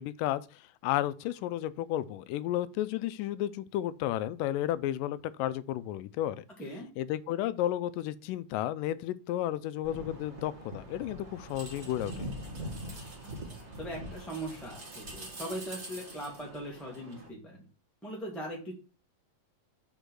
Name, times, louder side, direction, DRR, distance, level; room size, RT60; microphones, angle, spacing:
voice 1, 0.0-6.5 7.0-12.3, left 13 dB, 90° left, 2.2 m, -32 dB
sound 1, 9.8-17.3, right 1 dB, 25° right, 1.5 m, -43 dB
voice 2, 13.2-17.6 18.0-18.7, right 1 dB, ahead, 1.1 m, -40 dB
5.4 x 5.2 x 6.2 m
omnidirectional pair, 3.8 m